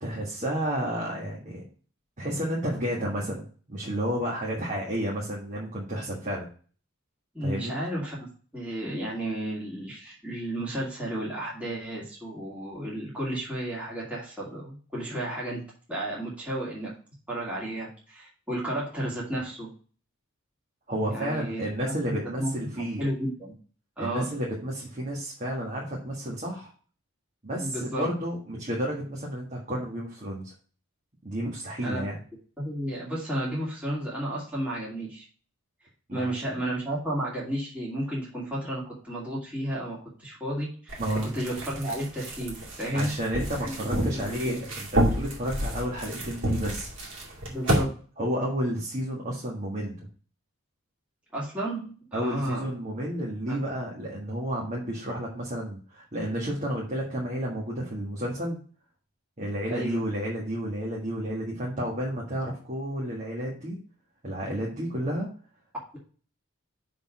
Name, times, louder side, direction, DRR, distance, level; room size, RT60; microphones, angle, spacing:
voice 1, 0.0-1.6 2.2-6.5 7.4-7.7 20.9-23.1 24.0-26.7 27.4-30.5 31.2-32.2 36.1-36.6 41.0-41.3 42.9-44.9 45.2-47.3 48.2-50.1 52.1-58.6 59.4-63.8 64.2-65.3, equal, 35° right, -4 dB, 1.6 m, -31 dB
voice 2, 7.3-8.2 8.5-15.6 15.9-16.9 17.3-19.7 21.1-22.5 22.8-23.5 24.0-24.3 27.6-28.1 31.8-32.0 32.6-35.2 36.1-43.1 43.8-44.6 47.5-47.9 51.3-52.7 53.5-53.6 59.7-60.0, right 1 dB, 5° right, -7 dB, 2.4 m, -32 dB
sound 1, 40.9-47.8, right 1 dB, 55° right, 2.4 m, -30 dB
6.6 x 3.9 x 6.1 m, 0.40 s
head